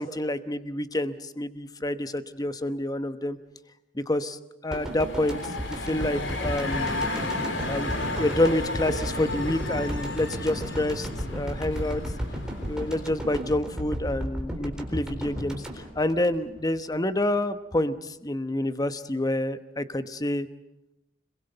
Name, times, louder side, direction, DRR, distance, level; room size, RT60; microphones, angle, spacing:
voice 1, 0.0-3.4 3.9-5.4 5.7-6.9 7.7-12.0 12.6-20.5, left 1 dB, 20° left, 11 dB, 1.0 m, -28 dB
sound 1, 4.7-13.5, left 2 dB, 70° left, 3.6 m, -33 dB
sound 2, 4.7-16.9 17.2-17.3, equal, 5° right, 4.0 m, -35 dB
26.0 x 22.0 x 7.9 m, 0.89 s
head